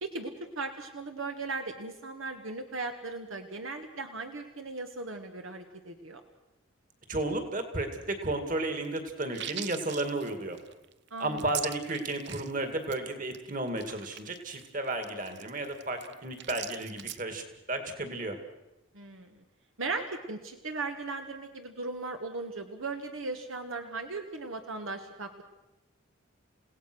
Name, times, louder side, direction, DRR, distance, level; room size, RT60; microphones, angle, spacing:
voice 1, 0.0-6.2 11.1-11.5 18.9-19.4 19.8-25.4, right 3 dB, 70° right, 5 dB, 1.5 m, -37 dB
voice 2, 7.1-10.6 11.2-18.4, right 2 dB, 40° right, 7 dB, 2.4 m, -33 dB
sound 1, 8.8-12.6 12.8-13.0 13.3-13.4 13.7-17.2, right 12 dB, 55° right, 0.8 m, -41 dB
29.5 x 17.0 x 6.3 m, 0.96 s
head